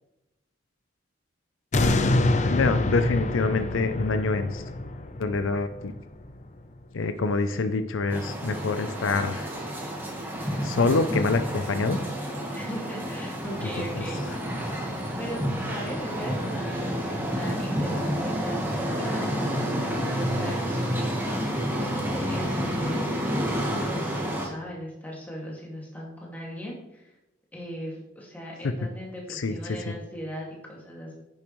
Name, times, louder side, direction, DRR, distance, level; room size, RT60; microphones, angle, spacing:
sound 1, 1.7-6.8 7.3-7.4, left 2 dB, 35° left, 0.6 m, -26 dB
voice 1, 1.8-2.1 2.5-4.6 5.2-5.9 6.9-9.5 10.6-12.0 13.6-13.7 14.0-14.1 28.6-28.7 29.3-29.9, left 3 dB, 80° left, 10 dB, 0.5 m, -26 dB
sound 2, 8.1-24.5, equal, 10° right, 1.4 m, -29 dB
voice 2, 12.5-14.5 15.2-21.1 21.7-27.1 27.5-31.2, equal, 10° left, -4 dB, 2.0 m, -39 dB
10.0 x 7.0 x 3.1 m, 0.93 s
head